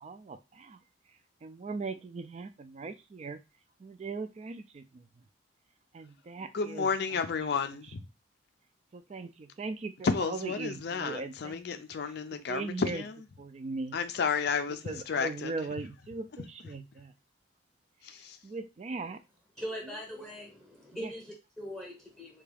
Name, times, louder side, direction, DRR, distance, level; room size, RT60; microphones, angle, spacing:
voice 1, 0.0-0.8 1.4-3.4 3.8-5.0 5.9-6.9 8.9-11.8 12.3-13.0 13.4-14.0 14.8-17.1 18.4-19.2 21.0-21.1, right 3 dB, 35° right, 0.3 m, -39 dB
voice 2, 6.5-8.0 10.0-13.2 13.9-15.6 18.0-18.4, left 5 dB, 55° left, 0.4 m, -32 dB
voice 3, 19.6-22.4, equal, ahead, 0.8 m, -41 dB
3.4 x 2.3 x 3.3 m
head